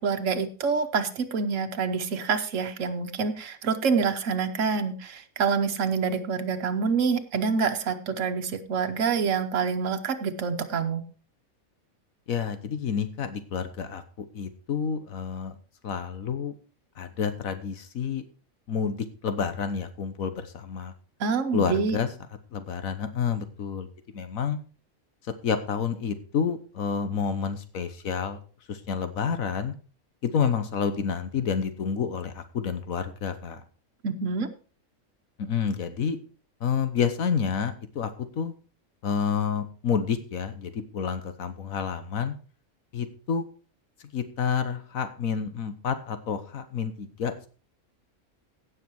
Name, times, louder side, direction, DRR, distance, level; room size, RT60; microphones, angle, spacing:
voice 1, 0.0-11.0 21.2-22.0 34.0-34.5, right 5 dB, 65° right, 6 dB, 1.4 m, -27 dB
voice 2, 12.3-14.0 14.3-15.5 15.8-16.5 17.0-18.2 18.7-20.9 21.5-22.1 22.5-23.9 24.1-24.6 25.4-28.4 28.7-29.7 30.2-33.6 35.4-36.2 36.6-38.1 38.4-38.5 39.0-42.3 42.9-43.4 44.1-47.5, left 6 dB, 75° left, 10 dB, 1.5 m, -29 dB
16.5 x 6.6 x 4.7 m, 0.37 s
omnidirectional pair, 1.4 m